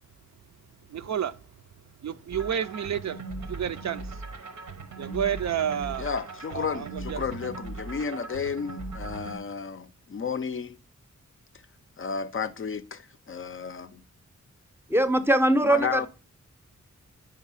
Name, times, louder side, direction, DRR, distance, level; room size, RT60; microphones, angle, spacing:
voice 1, 0.9-1.3 2.0-3.2 3.5-4.0 5.0-6.1 6.5-7.2, right 9 dB, 65° right, 0.5 m, -30 dB
sound 1, 2.3-9.4, right 3 dB, 85° right, 1.0 m, -39 dB
voice 2, 6.0-10.8 12.0-14.0 15.6-16.1, left 6 dB, 45° left, 0.4 m, -32 dB
voice 3, 14.9-16.1, right 1 dB, 10° right, 0.6 m, -21 dB
5.0 x 4.5 x 5.5 m
wide cardioid pair, 80°, 30 cm